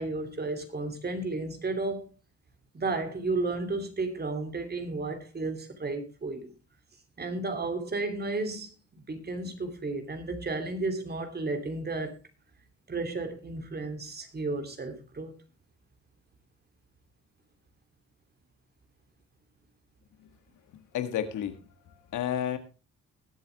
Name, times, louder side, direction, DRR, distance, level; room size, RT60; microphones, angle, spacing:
voice 1, 0.0-2.1 2.7-6.5 7.2-12.1 12.9-15.4, right 3 dB, 30° right, 3.0 m, -33 dB
voice 2, 20.7-22.6, left 10 dB, 80° left, 1.8 m, -32 dB
20.5 x 7.8 x 3.4 m
cardioid pair, 90°, 30 cm